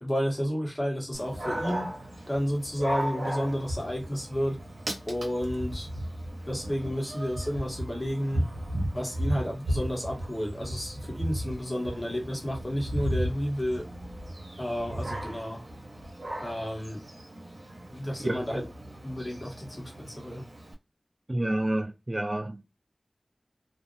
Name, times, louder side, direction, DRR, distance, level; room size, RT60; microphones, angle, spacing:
voice 1, 0.0-1.9 2.3-4.6 5.1-5.9 6.5-8.5 8.9-13.8 14.6-15.6 16.4-17.0 17.9-18.6 19.0-20.4, equal, 30° left, 1.1 m, -31 dB
Dog, 1.1-20.7, right 1 dB, 80° right, 0.8 m, -36 dB
voice 2, 18.2-18.6 21.3-22.6, right 1 dB, 30° right, 0.3 m, -29 dB
2.4 x 2.0 x 2.5 m
wide cardioid pair, 50°, 0 cm